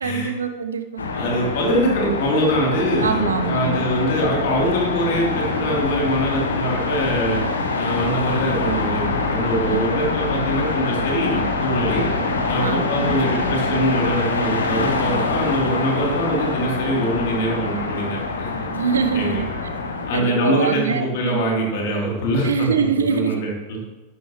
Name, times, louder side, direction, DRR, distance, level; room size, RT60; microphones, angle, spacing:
voice 1, 0.0-1.0 3.0-3.8 9.7-9.9 12.6-13.2 13.4-13.5 18.7-19.5 20.1-21.4 22.4-23.4, right 6 dB, 70° right, 8 dB, 0.9 m, -24 dB
sound 1, 1.0-20.2, left 3 dB, 70° left, 1.4 m, -24 dB
voice 2, 1.1-7.4 7.8-12.1 12.5-18.7 19.1-19.4 20.1-22.7 23.1-23.8, equal, 50° left, -2 dB, 3.5 m, -23 dB
13.0 x 12.0 x 3.2 m, 1.1 s
figure-of-eight pair, 90°, 0 cm